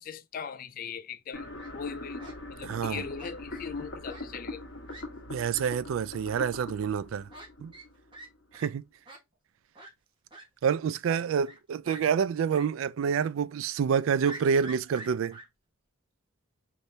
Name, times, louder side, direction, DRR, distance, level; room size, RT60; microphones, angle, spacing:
voice 1, 0.0-1.5 1.7-4.6, left 6 dB, 40° left, 0.3 m, -39 dB
sound 1, 1.3-8.4, left 2 dB, 55° left, 1.3 m, -42 dB
Fowl, 1.3-1.7 2.2-2.4 3.2-3.7 4.1-4.2 4.5-4.6 4.9-5.0 5.5-5.6 6.3-6.4 7.3-7.5 7.7-8.3 8.5-8.7 9.1-9.2 9.8-9.9 10.3-10.4 11.0-11.6 11.9-12.0 12.5-12.7 13.0-13.1 14.2-15.4, right 2 dB, 25° right, 1.4 m, -45 dB
voice 2, 2.6-3.0 5.3-7.3 7.6-7.7 8.5-8.8 10.6-15.4, right 7 dB, 75° right, 0.3 m, -28 dB
4.0 x 3.4 x 2.7 m
head